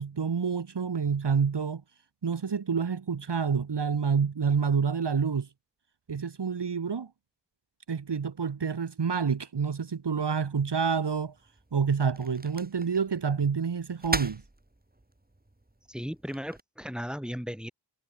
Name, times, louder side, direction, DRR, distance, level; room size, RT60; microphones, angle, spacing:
voice 1, 0.0-1.8 2.2-5.5 6.1-7.1 7.9-11.3 11.7-14.4, right 6 dB, 70° right, 1.3 m, -28 dB
sound 1, 10.5-16.6, right 1 dB, 20° right, 3.6 m, -40 dB
voice 2, 15.9-17.7, equal, ahead, 7.3 m, -36 dB
wide cardioid pair, 65°, 42 cm